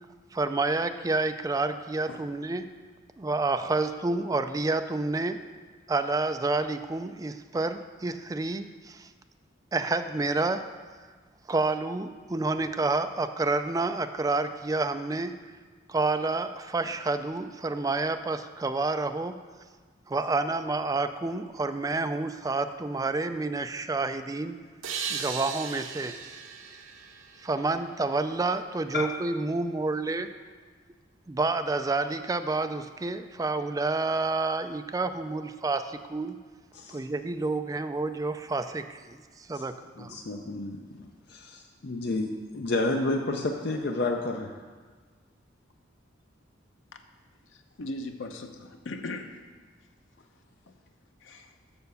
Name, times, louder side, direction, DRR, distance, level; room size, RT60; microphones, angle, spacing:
voice 1, 0.3-2.7 3.2-5.4 5.9-9.1 9.7-10.6 11.5-15.3 15.9-19.4 20.1-24.6 25.1-26.2 27.4-30.3 31.3-36.4 36.9-40.2, right 3 dB, 20° right, 8 dB, 0.3 m, -29 dB
sound 1, 24.8-28.3, right 6 dB, 90° right, 0.7 m, -37 dB
voice 2, 36.7-37.0 39.5-39.6 40.0-44.5, left 2 dB, 55° left, 2 dB, 0.6 m, -31 dB
voice 3, 47.5-49.4 50.7-50.8 51.2-51.5, left 2 dB, 85° left, 6 dB, 0.7 m, -38 dB
6.9 x 6.6 x 6.8 m, 1.5 s
head